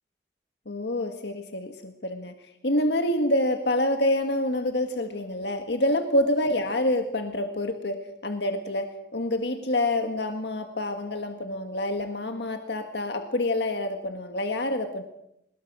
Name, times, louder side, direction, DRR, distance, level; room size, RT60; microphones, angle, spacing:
voice 1, 0.7-2.3 2.6-15.0, left 1 dB, 75° left, 6 dB, 1.8 m, -27 dB
23.5 x 21.5 x 6.3 m, 0.81 s
head